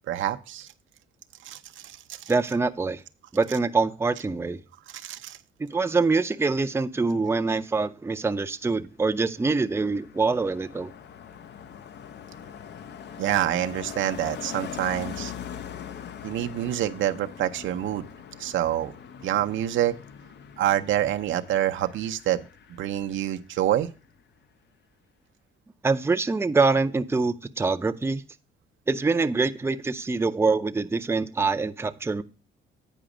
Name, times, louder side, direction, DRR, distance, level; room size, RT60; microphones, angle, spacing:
voice 1, 0.1-0.7 1.4-2.2 4.9-5.4 13.2-15.3 16.2-18.1 18.4-18.9 19.2-19.9 20.6-22.5 22.8-23.9, right 12 dB, 75° right, 0.7 m, -27 dB
voice 2, 2.3-3.0 3.3-4.6 5.6-10.9 25.8-28.2 28.9-32.2, right 3 dB, 10° right, 0.5 m, -25 dB
Car passing by, 8.8-23.6 23.9-24.2, left 8 dB, 60° left, 0.6 m, -42 dB
9.0 x 5.1 x 4.9 m
cardioid pair, 90°, 20 cm